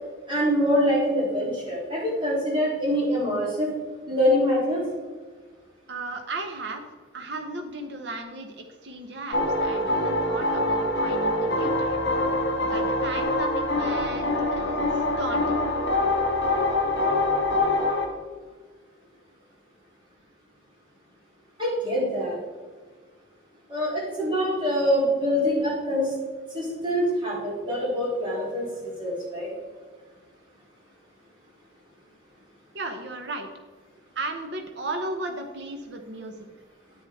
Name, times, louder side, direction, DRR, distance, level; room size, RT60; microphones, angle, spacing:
voice 1, 0.3-3.7 4.1-4.8 21.6-22.4 23.7-26.1 26.5-29.5, equal, 25° right, -6 dB, 3.3 m, -25 dB
voice 2, 5.9-6.8 7.1-12.0 12.6-15.6 32.7-33.5 34.2-36.3, right 2 dB, 60° right, 4 dB, 0.9 m, -35 dB
sound 1, 9.3-18.1, left 2 dB, 55° left, 1.6 m, -24 dB
10.0 x 8.9 x 3.6 m, 1.4 s
head